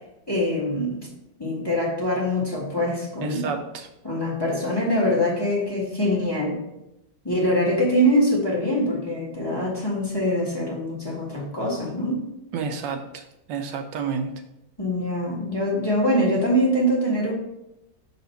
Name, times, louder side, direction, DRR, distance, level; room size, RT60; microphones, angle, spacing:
voice 1, 0.3-1.1 1.4-3.5 4.0-6.6 7.2-12.3 14.8-17.3, equal, 15° left, -2 dB, 1.4 m, -23 dB
voice 2, 3.2-3.9 12.5-13.2 13.5-14.3, right 6 dB, 75° right, 5 dB, 1.3 m, -30 dB
6.4 x 4.2 x 5.7 m, 0.86 s
omnidirectional pair, 2.1 m